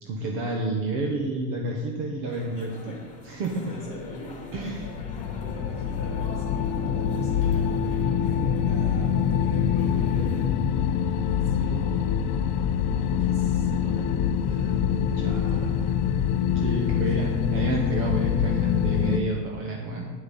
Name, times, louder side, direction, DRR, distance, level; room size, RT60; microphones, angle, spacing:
voice 1, 0.0-3.7 4.5-4.9 15.2-15.5 15.8-16.0 16.5-20.1, right 1 dB, 45° right, 0 dB, 1.4 m, -30 dB
sound 1, 2.3-10.5, left 3 dB, 15° left, 2.1 m, -45 dB
voice 2, 3.6-8.1 8.5-10.5 10.8-12.1 12.9-15.9 17.1-17.5, equal, 15° right, -4 dB, 3.5 m, -43 dB
sound 2, 4.5-19.2, left 8 dB, 45° left, 0.7 m, -25 dB
9.6 x 8.1 x 5.5 m, 1.4 s
supercardioid pair, 150°, 45 cm